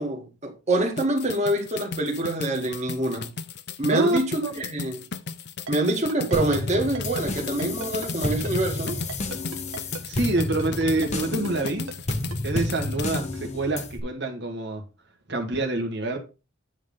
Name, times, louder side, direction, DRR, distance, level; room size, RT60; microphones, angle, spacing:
voice 1, 0.0-3.4 3.8-5.0 5.7-9.0, right 1 dB, 35° right, 2.2 m, -26 dB
sound 1, 1.0-13.3, left 5 dB, 55° left, 0.7 m, -36 dB
voice 2, 3.9-4.6 10.0-11.9 12.4-14.8 15.3-16.2, right 2 dB, 55° right, 2.2 m, -26 dB
Ringtone, 5.7-12.4, right 4 dB, 75° right, 1.4 m, -36 dB
sound 2, 6.3-14.0, left 2 dB, 35° left, 1.0 m, -31 dB
9.9 x 3.6 x 5.6 m
head